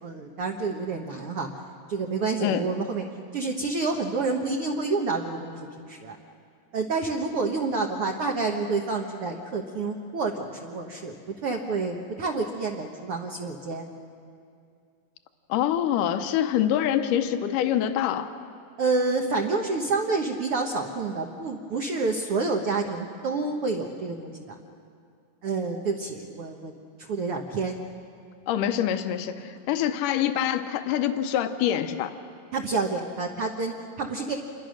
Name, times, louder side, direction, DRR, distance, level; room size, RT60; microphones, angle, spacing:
voice 1, 0.0-1.5 1.9-3.0 3.3-6.2 6.7-11.1 11.4-13.9 18.8-24.6 25.4-26.7 27.0-27.8 32.5-34.3, right 3 dB, 60° right, 1 dB, 1.5 m, -28 dB
voice 2, 15.5-18.3 28.5-32.1, left 10 dB, 75° left, 9 dB, 2.4 m, -25 dB
27.5 x 23.0 x 6.4 m, 2.3 s
omnidirectional pair, 4.0 m